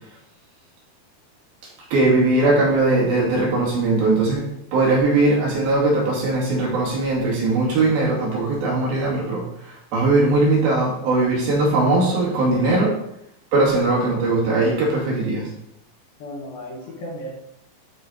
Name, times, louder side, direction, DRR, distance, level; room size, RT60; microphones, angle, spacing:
voice 1, 1.9-13.0 13.5-15.5, right 2 dB, 70° right, -4 dB, 4.1 m, -20 dB
voice 2, 16.2-17.3, left 1 dB, 70° left, -1 dB, 3.5 m, -33 dB
11.5 x 4.4 x 4.6 m, 0.75 s
omnidirectional pair, 4.5 m